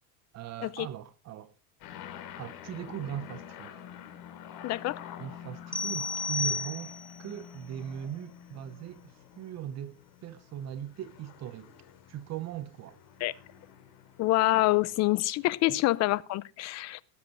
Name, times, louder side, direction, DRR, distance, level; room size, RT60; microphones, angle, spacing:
voice 1, 0.3-1.5 2.4-3.7 5.2-6.9 7.2-10.0 10.2-11.7 12.1-13.0 15.7-15.8, right 11 dB, 35° right, 0.9 m, -39 dB
sound 1, 1.8-15.5, left 10 dB, 50° left, 3.6 m, -48 dB
voice 2, 4.6-5.0 13.2-13.3 14.2-17.0, left 17 dB, 35° left, 0.6 m, -26 dB
sound 2, 5.7-7.3, left 3 dB, ahead, 1.1 m, -32 dB
19.0 x 7.8 x 4.2 m
supercardioid pair, 135°, 48 cm